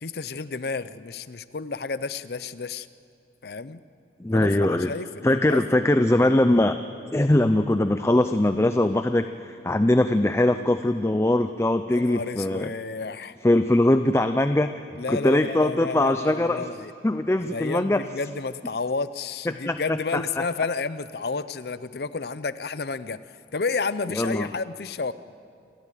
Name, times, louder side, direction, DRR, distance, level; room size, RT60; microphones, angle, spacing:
voice 1, 0.0-2.9 3.4-3.8 4.3-5.6 11.9-13.4 15.0-16.9 17.4-23.2 23.5-25.1, left 4 dB, 60° left, 14 dB, 0.6 m, -31 dB
voice 2, 4.2-4.9 5.2-6.8 7.1-12.7 13.4-16.7 17.0-18.0 19.5-20.4 24.1-24.5, left 1 dB, 15° left, 9 dB, 0.5 m, -22 dB
28.0 x 13.5 x 9.2 m, 2.4 s
head